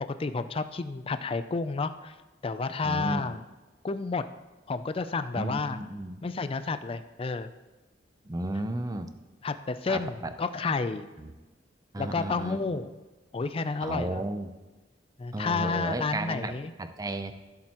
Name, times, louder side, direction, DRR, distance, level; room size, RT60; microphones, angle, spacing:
voice 1, 0.2-2.1 2.4-3.4 3.8-4.2 4.7-5.8 6.2-7.5 9.4-11.1 12.0-12.9 13.3-14.2 15.2-16.7, left 4 dB, 30° left, 11 dB, 0.4 m, -30 dB
voice 2, 2.8-3.4 5.3-6.2 8.2-9.1 9.9-10.3 11.2-11.3 11.9-12.6 13.8-14.5 15.3-17.3, right 1 dB, 20° right, 9 dB, 0.6 m, -33 dB
15.5 x 7.5 x 3.0 m, 1.2 s
head